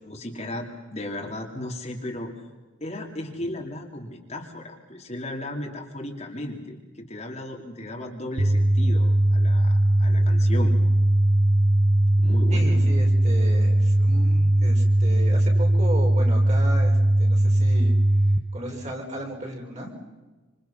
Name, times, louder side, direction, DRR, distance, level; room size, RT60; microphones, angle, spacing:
voice 1, 0.0-2.3 2.8-10.8 12.2-12.8, left 1 dB, 30° left, 1 dB, 3.1 m, -35 dB
sound 1, 8.4-18.4, right 1 dB, 55° right, 1.6 m, -19 dB
voice 2, 12.5-17.9 18.5-19.9, equal, 35° right, 0 dB, 5.6 m, -35 dB
28.5 x 27.0 x 5.9 m, 1.2 s
head